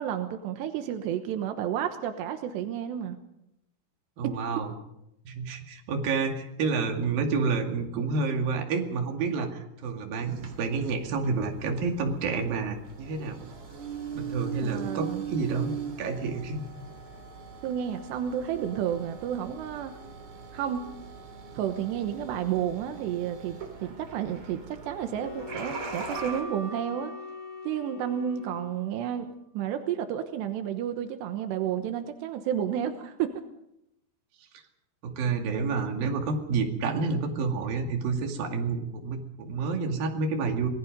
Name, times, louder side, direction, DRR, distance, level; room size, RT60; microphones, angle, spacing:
voice 1, 0.0-3.2 4.2-4.3 14.6-15.2 17.6-19.9 20.5-20.9 21.6-27.1 27.7-29.3 29.5-33.4, right 9 dB, 85° right, 7 dB, 3.3 m, -31 dB
voice 2, 4.2-4.7 5.3-13.4 14.1-16.6 35.0-40.7, right 4 dB, 60° right, 3 dB, 3.9 m, -29 dB
sound 1, 10.3-26.4, right 6 dB, 45° right, 3.7 m, -41 dB
sound 2, 25.2-29.1, left 7 dB, 70° left, 1.9 m, -42 dB
Keyboard (musical), 26.1-28.7, right 3 dB, 25° left, 3.6 m, -44 dB
27.0 x 19.5 x 5.3 m, 0.83 s
omnidirectional pair, 4.8 m